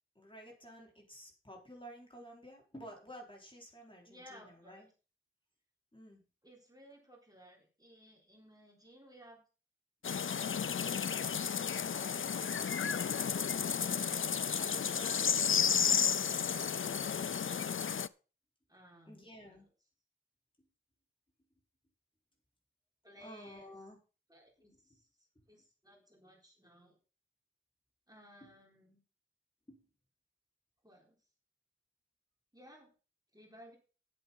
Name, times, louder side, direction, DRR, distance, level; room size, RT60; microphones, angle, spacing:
voice 1, 0.1-4.9 5.9-6.2 19.1-19.7 20.6-20.7 23.2-24.0 24.9-25.0 28.4-28.6 29.7-29.8, equal, 25° left, -1 dB, 4.7 m, -52 dB
voice 2, 4.0-4.9 6.4-9.4 10.1-10.8 11.9-17.9 18.7-19.5 23.0-23.8 24.3-25.1 25.5-27.0 28.1-29.0 30.8-31.2 32.5-32.9 33.3-33.8, equal, 15° right, -1 dB, 4.0 m, -58 dB
sound 1, 10.0-18.1, left 7 dB, 70° left, 0.5 m, -32 dB
11.0 x 7.9 x 5.6 m, 0.35 s
wide cardioid pair, 70°, 21 cm